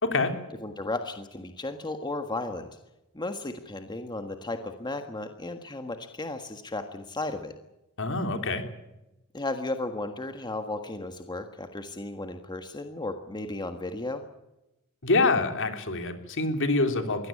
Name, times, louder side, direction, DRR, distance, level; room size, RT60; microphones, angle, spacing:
voice 1, 0.0-0.3 8.0-8.6 15.0-17.3, left 3 dB, 60° left, 6 dB, 3.3 m, -26 dB
voice 2, 0.6-2.7 3.1-7.5 9.3-14.2, left 2 dB, 20° left, 6 dB, 1.5 m, -34 dB
22.5 x 17.0 x 8.5 m, 0.93 s
head